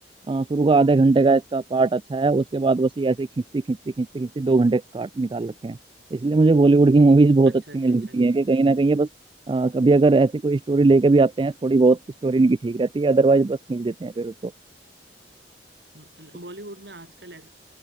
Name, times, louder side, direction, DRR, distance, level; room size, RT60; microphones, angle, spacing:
voice 1, 0.3-3.3 3.5-5.8 6.1-9.1 9.5-14.5, right 3 dB, 30° right, 0.3 m, -19 dB
voice 2, 7.5-8.3 15.9-17.5, right 1 dB, 65° right, 7.0 m, -43 dB
head